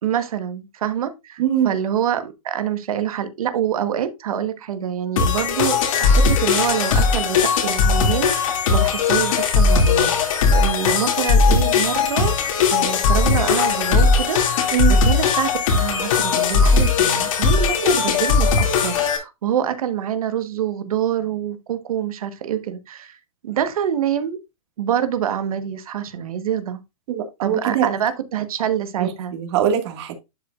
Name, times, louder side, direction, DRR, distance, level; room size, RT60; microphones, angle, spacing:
voice 1, 0.0-23.2 23.4-24.4 24.8-26.8 27.4-29.3, right 9 dB, 75° right, 1.3 m, -26 dB
voice 2, 1.4-1.7 14.7-14.9 27.1-27.9 29.0-30.1, right 10 dB, 50° right, 1.9 m, -22 dB
sound 1, 5.2-19.2, left 5 dB, 65° left, 2.4 m, -18 dB
11.0 x 5.0 x 2.4 m
hypercardioid pair, 150°, 18 cm